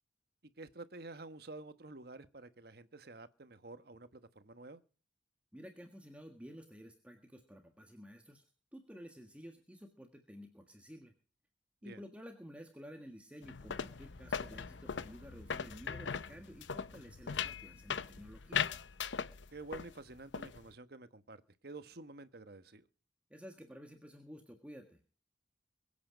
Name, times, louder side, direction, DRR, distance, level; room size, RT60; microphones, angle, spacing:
voice 1, 0.6-4.8 11.8-12.0 19.5-22.9, right 3 dB, 60° right, 12 dB, 1.2 m, -50 dB
voice 2, 5.5-11.1 11.8-18.7 23.3-25.0, equal, 5° right, 4 dB, 1.6 m, -52 dB
sound 1, 13.4-19.9 20.2-20.7, left 7 dB, 90° left, 0.7 m, -39 dB
22.5 x 8.6 x 5.1 m, 0.39 s
head